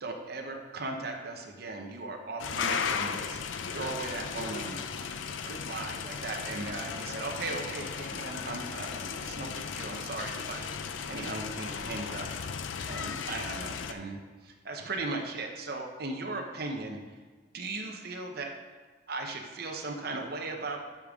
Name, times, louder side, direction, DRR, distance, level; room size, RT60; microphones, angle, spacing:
voice 1, 0.0-3.4 3.7-5.2 5.5-12.3 12.9-17.2 17.5-18.5 19.1-20.9, right 2 dB, 55° right, 2 dB, 0.8 m, -38 dB
sound 1, 2.4-13.9, left 6 dB, 80° left, 0.5 m, -36 dB
13.0 x 5.2 x 3.6 m, 1.4 s
head